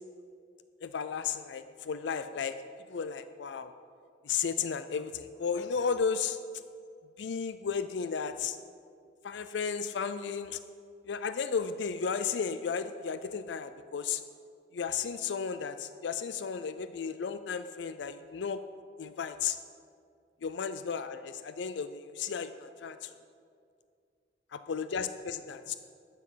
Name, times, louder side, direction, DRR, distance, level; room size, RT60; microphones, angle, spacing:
voice 1, 0.8-2.5 2.9-3.7 4.2-6.4 7.2-8.6 9.2-10.6 11.1-14.2 14.7-18.6 19.0-19.6 20.4-23.1 24.5-25.7, left 6 dB, 80° left, 11 dB, 0.4 m, -34 dB
12.0 x 8.1 x 5.7 m, 2.2 s
head